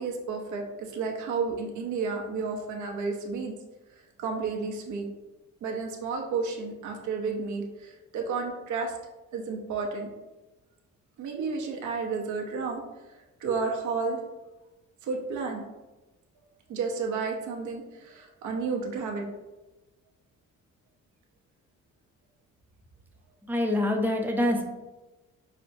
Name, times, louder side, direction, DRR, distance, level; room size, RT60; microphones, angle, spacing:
voice 1, 0.0-3.5 4.2-5.1 5.6-8.9 9.3-10.1 11.2-14.2 15.0-15.6 16.7-19.2, right 4 dB, 75° right, 1 dB, 0.8 m, -32 dB
voice 2, 23.5-24.6, left 1 dB, 5° right, 1 dB, 0.6 m, -25 dB
5.9 x 2.1 x 2.6 m, 1.1 s
cardioid pair, 90°, 30 cm